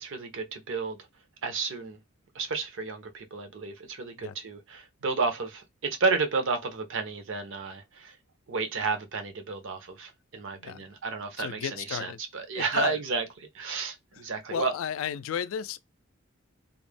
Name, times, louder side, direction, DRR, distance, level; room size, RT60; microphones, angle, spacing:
voice 1, 0.0-1.0 1.4-2.0 2.3-8.1 8.5-13.3 13.5-14.7, right 4 dB, 60° right, 0.6 m, -32 dB
voice 2, 10.5-10.9 11.4-12.2 12.6-13.0 14.5-15.8, left 8 dB, 65° left, 0.3 m, -33 dB
2.3 x 2.0 x 3.2 m
head